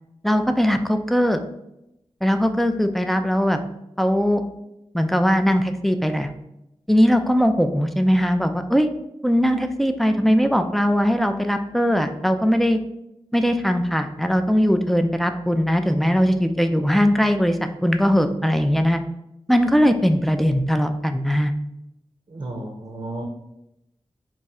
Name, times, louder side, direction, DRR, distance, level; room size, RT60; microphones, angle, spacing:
voice 1, 0.2-1.4 2.2-3.6 4.0-4.4 4.9-6.3 6.9-8.9 9.2-12.8 13.3-19.0 19.5-21.5, equal, ahead, 7 dB, 0.4 m, -20 dB
voice 2, 22.3-23.2, right 1 dB, 50° right, 1 dB, 0.6 m, -33 dB
3.0 x 2.4 x 4.2 m, 0.87 s
cardioid pair, 40°, 11 cm